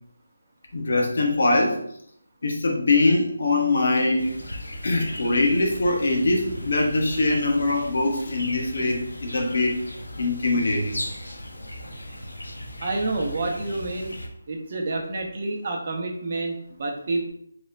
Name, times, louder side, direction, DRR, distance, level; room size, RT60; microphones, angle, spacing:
voice 1, 0.7-1.8 2.4-4.3 4.8-9.8 10.2-11.0, left 2 dB, 60° left, 1 dB, 1.0 m, -22 dB
sound 1, 4.2-14.3, left 1 dB, 90° left, 0.9 m, -37 dB
voice 2, 12.8-14.2 14.5-17.3, right 2 dB, 45° right, 2 dB, 0.8 m, -28 dB
5.0 x 3.4 x 2.6 m, 0.70 s
figure-of-eight pair, 160°, 0 cm